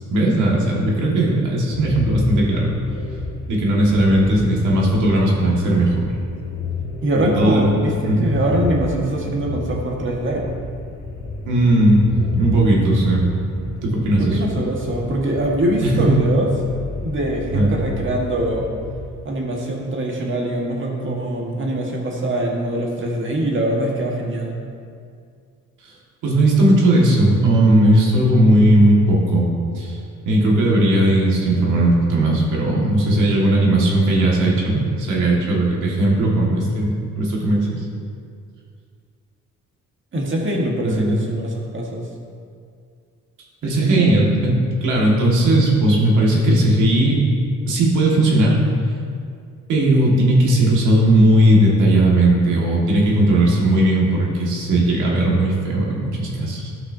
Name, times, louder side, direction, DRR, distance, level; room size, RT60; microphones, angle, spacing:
voice 1, 0.1-2.7 3.5-6.1 7.4-7.7 8.1-8.3 11.4-12.0 12.4-13.2 13.8-14.4 15.8-16.1 17.5-17.7 26.2-29.5 29.7-30.0 30.3-37.7 40.8-41.2 43.6-47.2 47.7-48.6 49.7-56.7, right 1 dB, 80° right, -3 dB, 1.9 m, -17 dB
sound 1, 1.7-19.1, left 1 dB, 75° left, 1.5 m, -31 dB
voice 2, 7.0-10.5 14.2-16.5 17.0-18.7 19.2-24.6 40.1-42.1 43.6-44.1, right 1 dB, 40° right, -1 dB, 1.6 m, -23 dB
13.0 x 5.9 x 2.8 m, 2.3 s
cardioid pair, 90°, 30 cm